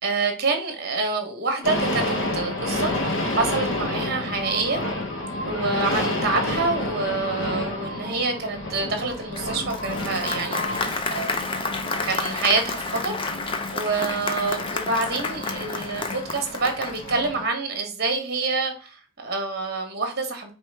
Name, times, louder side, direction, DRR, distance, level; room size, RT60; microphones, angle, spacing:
voice 1, 0.0-4.8 5.4-11.7 12.0-13.2 13.7-20.5, right 3 dB, 45° right, 1.1 m, -27 dB
sound 1, 1.6-17.5, left 1 dB, 55° left, 0.8 m, -30 dB
Applause, 9.3-17.3, left 3 dB, 25° left, 0.4 m, -30 dB
4.6 x 2.9 x 3.3 m
head